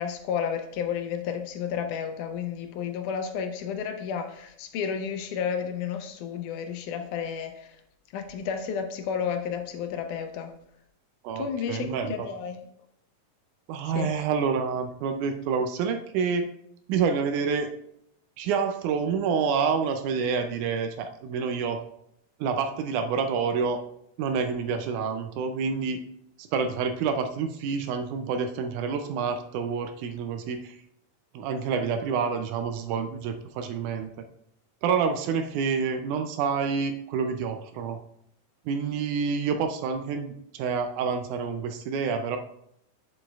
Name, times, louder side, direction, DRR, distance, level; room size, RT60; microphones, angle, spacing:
voice 1, 0.0-7.8 8.1-10.5 11.4-12.6 13.8-14.2, left 7 dB, 80° left, 7 dB, 2.0 m, -32 dB
voice 2, 11.2-12.1 13.7-16.5 16.9-17.7 18.4-21.8 22.4-23.8 24.2-26.0 26.4-30.8 31.3-34.3 34.8-38.0 38.7-42.4, right 5 dB, 80° right, 7 dB, 1.9 m, -28 dB
7.9 x 7.1 x 2.3 m, 0.73 s
omnidirectional pair, 3.8 m